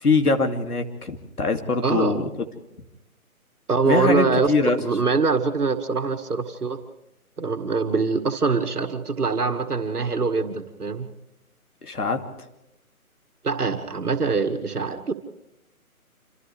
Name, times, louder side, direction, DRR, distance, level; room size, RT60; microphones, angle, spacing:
voice 1, 0.0-2.3 3.9-4.8 11.8-12.2, left 3 dB, 85° left, 5 dB, 2.7 m, -22 dB
voice 2, 1.8-2.2 3.7-4.5 4.8-6.8 7.4-11.1 13.4-15.1, right 4 dB, 85° right, 6 dB, 2.1 m, -24 dB
28.0 x 27.5 x 3.4 m, 0.89 s
figure-of-eight pair, 160°, 44 cm